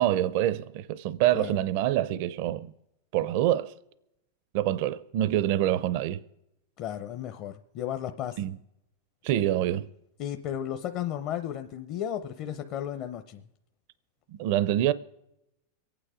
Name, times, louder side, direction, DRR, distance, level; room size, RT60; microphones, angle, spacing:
voice 1, 0.0-2.7 3.1-3.7 4.5-6.2 8.4-8.5 9.2-9.9 14.3-14.9, right 12 dB, 55° right, 0.5 m, -26 dB
voice 2, 6.8-8.4 10.2-13.4, left 10 dB, 45° left, 0.7 m, -34 dB
23.0 x 9.1 x 5.0 m
supercardioid pair, 140°, 0 cm